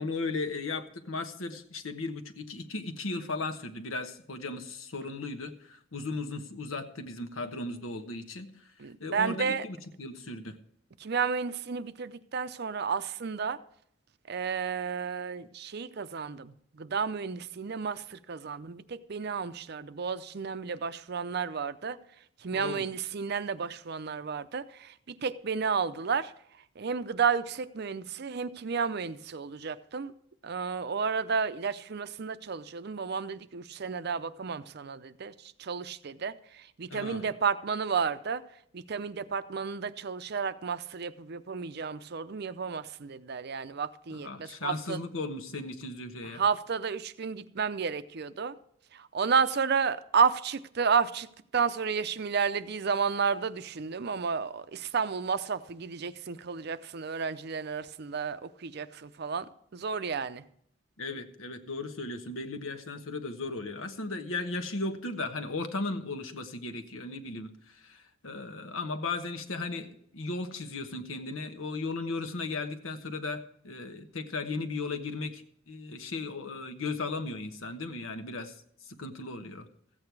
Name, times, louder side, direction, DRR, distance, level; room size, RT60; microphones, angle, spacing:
voice 1, 0.0-8.5 9.0-10.5 22.5-22.8 36.9-37.2 44.1-46.4 61.0-78.5 78.9-79.7, left 3 dB, 85° left, 1.2 m, -36 dB
voice 2, 8.8-9.6 11.0-13.6 14.3-22.0 22.4-24.9 25.2-26.3 26.8-30.1 30.4-35.3 35.6-38.4 38.7-45.0 46.3-48.5 48.9-51.3 51.5-60.4, right 6 dB, 50° right, 0.5 m, -32 dB
14.5 x 8.7 x 4.7 m
head